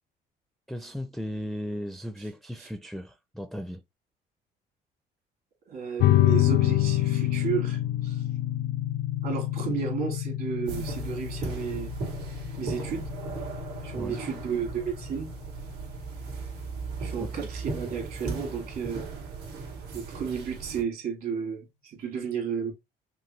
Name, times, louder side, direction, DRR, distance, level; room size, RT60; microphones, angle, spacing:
voice 1, 0.7-3.8 13.9-14.2 17.2-17.3, equal, ahead, 0.4 m, -36 dB
voice 2, 5.7-8.2 9.2-11.9 12.6-13.1 13.8-15.3 17.0-19.1 19.9-22.7, right 7 dB, 65° right, 2.6 m, -33 dB
sound 1, 6.0-17.0, left 14 dB, 75° left, 0.4 m, -28 dB
sound 2, 10.7-20.8, right 4 dB, 80° right, 2.5 m, -37 dB
5.9 x 2.3 x 3.1 m
cardioid pair, 110°, 17 cm